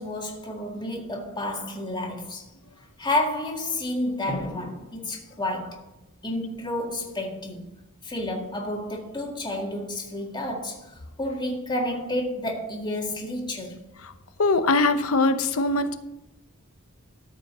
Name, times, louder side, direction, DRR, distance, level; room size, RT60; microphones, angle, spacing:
voice 1, 0.0-2.5 3.0-5.8 6.2-7.7 8.0-13.8, left 1 dB, 20° left, 1.9 m, -30 dB
voice 2, 14.4-16.0, left 3 dB, 70° left, 0.9 m, -22 dB
13.5 x 5.2 x 6.9 m
head